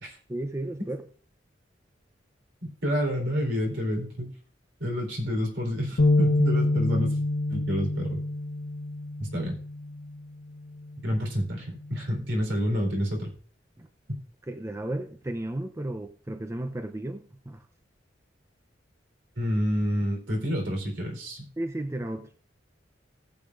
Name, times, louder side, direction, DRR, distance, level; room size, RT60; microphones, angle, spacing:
voice 1, 0.3-1.0 13.8-13.9 14.5-17.6 21.6-22.3, right 1 dB, 15° right, 0.6 m, -34 dB
voice 2, 2.8-4.3 4.8-7.2 7.5-8.2 9.2-9.5 11.0-13.3 19.4-21.4, equal, 70° right, 3.9 m, -28 dB
sound 1, 6.0-10.2 10.7-10.9 11.8-12.2, left 2 dB, 80° left, 1.3 m, -26 dB
18.5 x 7.4 x 2.5 m
head